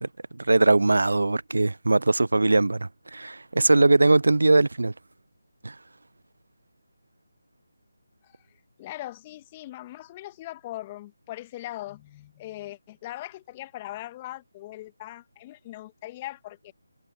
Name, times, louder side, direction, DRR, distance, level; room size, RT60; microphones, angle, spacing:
voice 1, 0.0-4.9 5.6-5.7, right 2 dB, 70° right, 0.4 m, -21 dB
voice 2, 8.8-16.7, left 15 dB, 20° left, 1.8 m, -40 dB
figure-of-eight pair, 155°, 0 cm